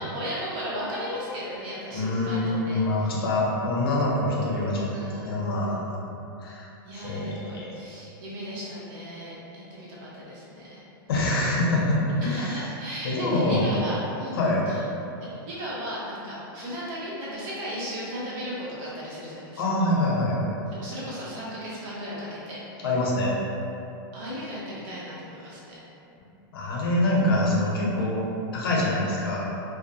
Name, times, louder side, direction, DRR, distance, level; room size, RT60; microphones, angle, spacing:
voice 1, 0.0-3.2 4.9-5.8 6.8-10.8 12.2-14.8 15.2-19.6 20.7-22.9 24.1-25.8, equal, 50° right, -7 dB, 0.8 m, -36 dB
voice 2, 1.9-5.8 6.4-6.7 6.9-7.7 11.1-12.6 13.0-13.6 14.3-14.6 19.6-20.4 22.8-23.4 26.5-28.2 28.5-29.5, left 1 dB, 80° left, -4 dB, 0.7 m, -25 dB
2.5 x 2.1 x 2.7 m, 2.8 s
supercardioid pair, 140°, 12 cm